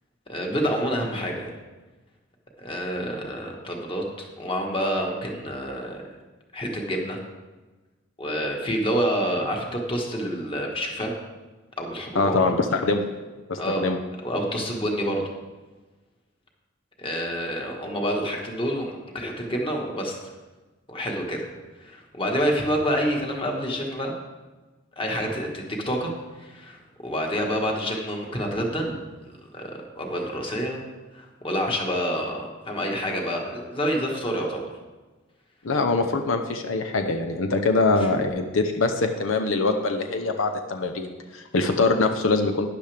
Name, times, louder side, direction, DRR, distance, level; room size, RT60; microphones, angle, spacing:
voice 1, 0.3-1.5 2.6-6.0 6.5-7.2 8.2-11.1 11.8-12.5 13.6-13.9 14.2-15.2 17.0-20.2 20.9-21.5 21.8-24.1 25.0-26.1 26.4-28.9 29.2-30.8 31.1-34.6, equal, 25° left, 0 dB, 1.6 m, -28 dB
voice 2, 12.1-13.0 13.5-14.0 35.6-42.7, left 3 dB, 85° left, 5 dB, 0.8 m, -23 dB
12.5 x 10.0 x 3.5 m, 1.2 s
head